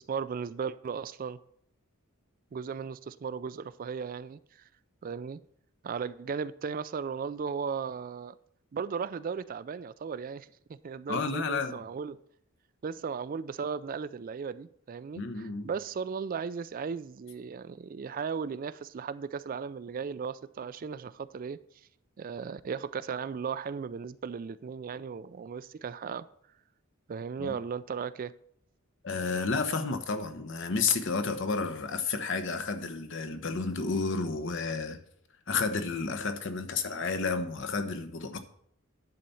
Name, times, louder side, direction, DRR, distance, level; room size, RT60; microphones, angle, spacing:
voice 1, 0.0-1.4 2.5-4.6 5.0-5.4 5.8-8.3 8.7-12.2 12.8-21.6 22.2-26.3 27.1-28.3, right 6 dB, 40° right, 0.3 m, -36 dB
voice 2, 11.1-11.8 15.1-15.7 27.4-27.5 29.0-35.0 35.5-38.4, left 4 dB, 60° left, 0.9 m, -31 dB
10.5 x 4.1 x 6.9 m
head